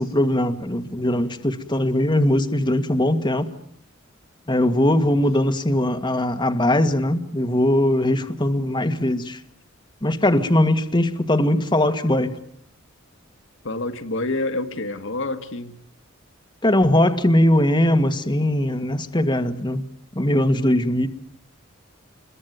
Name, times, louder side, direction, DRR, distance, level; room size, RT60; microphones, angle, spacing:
voice 1, 0.0-3.5 4.5-9.4 10.0-12.3 16.6-19.8 20.2-21.1, left 1 dB, 25° left, 1.9 m, -20 dB
voice 2, 13.6-15.8, left 2 dB, 65° left, 1.9 m, -27 dB
28.0 x 22.5 x 9.3 m
head